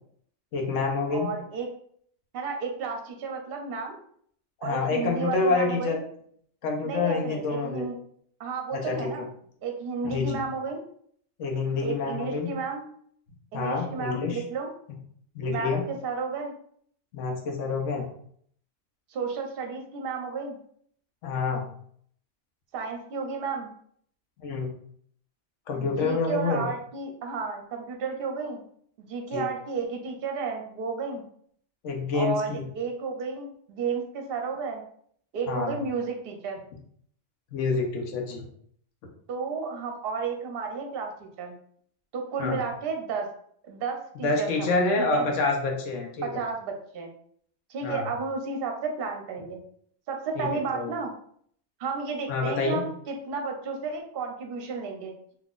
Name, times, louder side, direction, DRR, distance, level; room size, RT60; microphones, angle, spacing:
voice 1, 0.5-1.3 4.6-6.0 6.6-7.8 8.7-9.1 10.0-10.4 11.4-12.5 13.5-14.4 15.3-15.8 17.1-18.1 21.2-21.6 24.4-24.7 25.7-26.7 29.3-29.5 31.8-32.6 35.5-35.8 37.5-38.5 42.4-42.6 44.2-46.4 47.8-48.1 50.4-50.9 52.3-52.8, left 4 dB, 90° left, 1 dB, 1.1 m, -27 dB
voice 2, 1.1-1.7 2.3-4.0 4.6-6.0 6.8-8.0 8.4-9.2 9.6-10.8 11.8-12.8 13.5-14.7 15.5-16.5 19.1-20.6 22.7-23.7 25.8-28.6 29.0-31.2 32.1-34.8 35.3-36.6 39.3-41.6 42.1-43.3 43.6-45.3 46.2-47.1 47.7-49.6 50.1-51.1 51.8-55.1, right 4 dB, 60° right, 3 dB, 0.8 m, -32 dB
3.7 x 2.9 x 2.4 m, 0.62 s
omnidirectional pair, 1.2 m